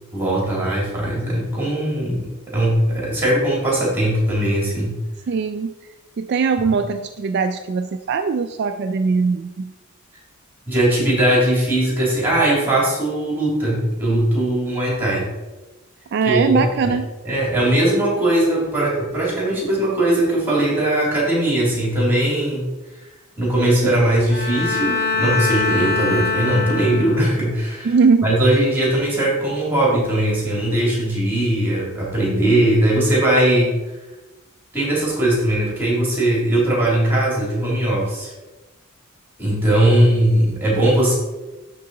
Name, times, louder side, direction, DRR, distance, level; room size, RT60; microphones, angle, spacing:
voice 1, 0.1-5.0 10.7-15.3 16.2-16.9 17.2-22.7 23.4-27.9 28.2-33.8 34.7-38.3 39.4-41.1, right 1 dB, 10° right, -4 dB, 2.5 m, -19 dB
voice 2, 5.3-5.7 6.2-9.7 16.1-17.1 27.8-28.4, right 5 dB, 50° right, 8 dB, 0.3 m, -20 dB
Bowed string instrument, 24.3-27.5, left 4 dB, 45° left, 2.0 m, -23 dB
11.0 x 3.9 x 3.8 m, 1.1 s
head